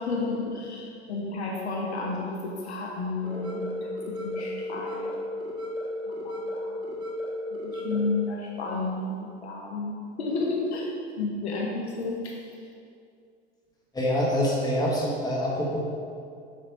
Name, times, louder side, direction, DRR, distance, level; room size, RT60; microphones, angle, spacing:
voice 1, 0.1-5.1 6.1-6.7 7.7-9.1 9.4-9.9 10.2-10.9 11.2-12.2, left 3 dB, 70° left, -2 dB, 1.0 m, -31 dB
sound 1, 3.2-8.2, left 1 dB, 15° right, 1.3 m, -34 dB
voice 2, 13.9-15.8, equal, 10° left, -4 dB, 1.4 m, -25 dB
7.7 x 5.0 x 3.0 m, 2.3 s
figure-of-eight pair, 80°, 34 cm